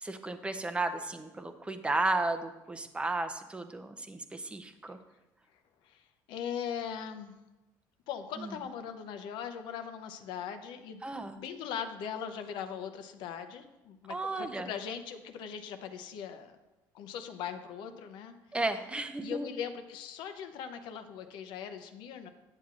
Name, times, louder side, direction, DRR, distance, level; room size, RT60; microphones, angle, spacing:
voice 1, 0.0-5.0 8.4-8.6 11.0-11.4 14.1-14.7 18.5-19.5, right 2 dB, 15° right, 8 dB, 0.6 m, -34 dB
voice 2, 5.8-7.4 8.1-11.0 11.3-16.6 16.9-18.3 19.2-22.3, left 8 dB, 75° left, 8 dB, 0.6 m, -40 dB
8.7 x 7.4 x 2.4 m, 1.0 s
cardioid pair, 105°, 8 cm